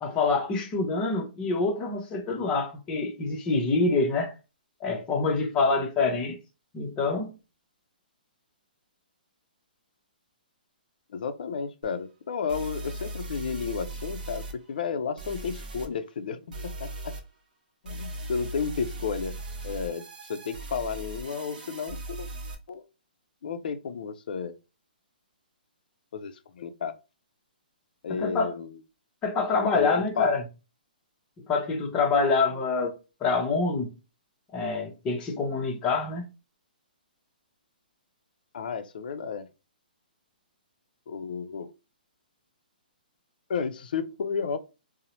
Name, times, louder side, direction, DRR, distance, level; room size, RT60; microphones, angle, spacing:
voice 1, 0.0-4.3 4.8-6.4 6.7-7.4 28.1-28.5 29.2-30.4 31.5-33.9 34.5-36.2, left 3 dB, 15° left, 0.6 m, -26 dB
voice 2, 11.1-17.1 17.8-19.4 19.6-22.3 22.7-22.8 23.4-24.6 26.1-27.0 28.0-28.8 29.7-30.3 38.5-39.5 41.1-41.7 43.5-44.6, left 6 dB, 65° left, 0.4 m, -32 dB
sound 1, 11.8-11.9 12.5-14.5 15.2-15.9 16.5-17.2 17.8-22.5, right 2 dB, 55° right, 0.7 m, -38 dB
2.7 x 2.0 x 2.9 m
hypercardioid pair, 155°, 5 cm